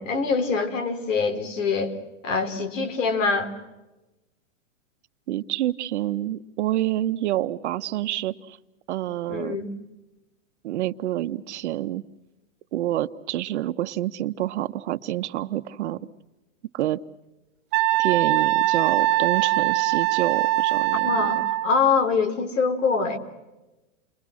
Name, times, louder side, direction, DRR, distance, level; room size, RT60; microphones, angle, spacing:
voice 1, 0.0-2.0 2.2-3.5 9.3-9.7 21.0-23.2, left 5 dB, 80° left, 8 dB, 3.8 m, -24 dB
voice 2, 5.3-8.6 8.9-9.6 10.6-12.0 12.7-16.0 16.7-17.0 18.0-21.2, right 13 dB, 65° right, 11 dB, 1.2 m, -27 dB
Wind instrument woodwind instrument, 17.7-21.8, right 18 dB, 30° right, 0.8 m, -22 dB
30.0 x 23.0 x 6.3 m, 1.1 s
hypercardioid pair, 145°, 37 cm